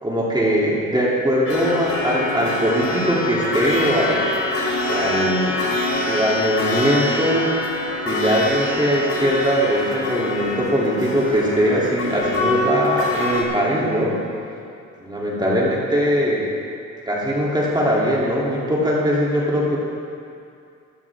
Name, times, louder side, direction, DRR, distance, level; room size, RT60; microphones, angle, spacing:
voice 1, 0.0-4.2 4.8-5.6 6.0-7.6 8.0-14.2 15.0-16.5 17.0-19.8, equal, 15° right, -6 dB, 3.1 m, -21 dB
sound 1, 1.5-13.4, left 1 dB, 50° left, 3.8 m, -25 dB
16.0 x 13.0 x 3.6 m, 2.4 s
cardioid pair, 90°, 30 cm